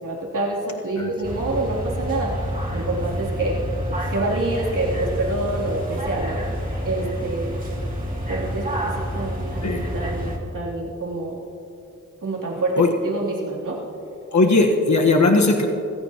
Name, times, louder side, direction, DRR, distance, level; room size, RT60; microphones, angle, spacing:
voice 1, 0.0-3.6 4.1-7.5 8.3-11.3 12.2-13.8, right 2 dB, 90° right, -5 dB, 3.2 m, -27 dB
sound 1, 1.2-10.4, equal, 25° right, 2.7 m, -28 dB
voice 2, 14.3-15.7, left 3 dB, 65° left, 2 dB, 1.4 m, -17 dB
24.5 x 15.5 x 3.0 m, 2.7 s
wide cardioid pair, 75°, 31 cm